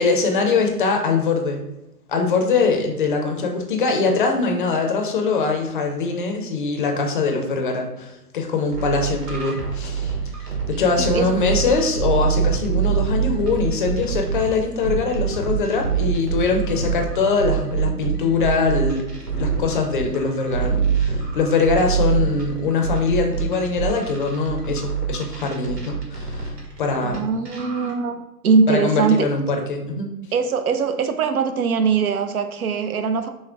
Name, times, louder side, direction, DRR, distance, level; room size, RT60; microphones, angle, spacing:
voice 1, 0.0-1.6 2.1-19.1 19.4-27.3 28.7-30.1, left 4 dB, 35° left, 3 dB, 0.5 m, -22 dB
sound 1, 8.7-14.4 14.8-27.2 27.5-27.9, right 8 dB, 85° right, 1.3 m, -25 dB
sound 2, 9.6-17.2, equal, 30° right, 0.7 m, -35 dB
voice 2, 27.0-29.2 30.3-33.3, right 5 dB, 65° right, 8 dB, 0.6 m, -21 dB
6.1 x 2.1 x 3.6 m, 0.95 s
figure-of-eight pair, 125°, 47 cm